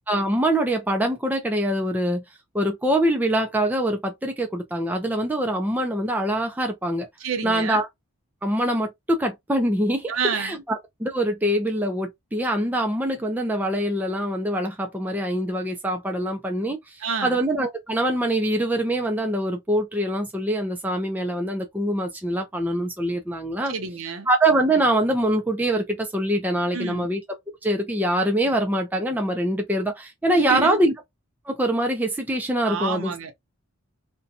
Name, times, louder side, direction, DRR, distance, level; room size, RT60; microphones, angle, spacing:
voice 1, 0.1-2.2 2.5-7.1 7.4-7.9 8.4-23.7 24.3-27.2 27.6-30.9 31.5-33.1, right 1 dB, 10° right, 0.4 m, -24 dB
voice 2, 7.2-7.8 10.1-10.6 17.0-17.4 23.7-24.3 26.7-27.1 30.3-30.8 32.6-33.3, right 5 dB, 75° right, 0.7 m, -29 dB
2.6 x 2.2 x 2.6 m
head